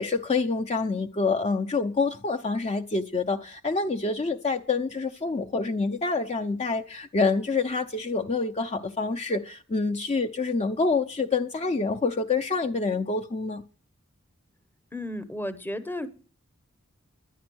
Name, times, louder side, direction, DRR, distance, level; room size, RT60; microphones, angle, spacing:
voice 1, 0.0-13.6, left 4 dB, 30° left, 0.6 m, -27 dB
voice 2, 14.9-16.1, left 1 dB, 10° left, 0.9 m, -33 dB
10.5 x 10.0 x 6.2 m
head